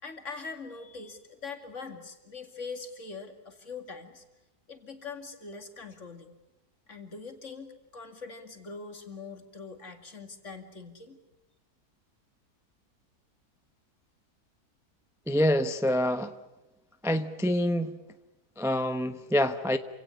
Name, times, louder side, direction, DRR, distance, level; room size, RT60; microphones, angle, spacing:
voice 1, 0.0-4.2 4.7-6.4 6.9-11.2, left 4 dB, 50° left, 6 dB, 2.6 m, -42 dB
voice 2, 15.3-16.3 17.0-17.9 18.6-19.8, left 1 dB, ahead, 9 dB, 0.7 m, -26 dB
27.0 x 17.5 x 9.8 m, 1.0 s
omnidirectional pair, 1.7 m